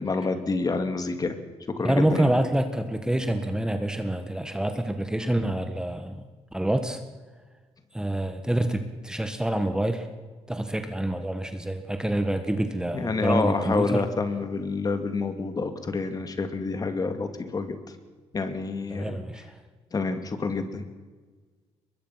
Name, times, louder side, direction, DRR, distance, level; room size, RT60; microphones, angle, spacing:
voice 1, 0.0-1.3 1.8-2.4 12.9-17.8 18.3-19.2 19.9-20.8, left 4 dB, 35° left, 8 dB, 2.5 m, -28 dB
voice 2, 1.8-6.2 6.5-7.0 7.9-10.1 10.5-14.1 18.9-19.6, right 1 dB, 5° right, 7 dB, 1.6 m, -27 dB
23.0 x 21.5 x 5.9 m, 1.4 s
cardioid pair, 95°, 11 cm